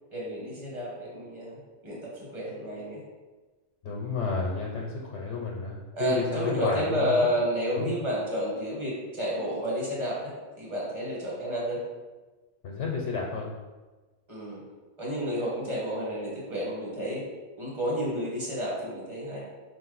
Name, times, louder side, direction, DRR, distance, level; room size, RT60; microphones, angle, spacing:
voice 1, 0.1-3.0 5.9-11.8 14.3-14.6 15.0-17.2 17.6-19.4, equal, 25° right, -5 dB, 1.3 m, -31 dB
voice 2, 3.8-7.1 7.8-7.9 12.6-13.5, left 4 dB, 85° left, -2 dB, 1.0 m, -31 dB
5.2 x 2.5 x 3.9 m, 1.2 s
omnidirectional pair, 1.2 m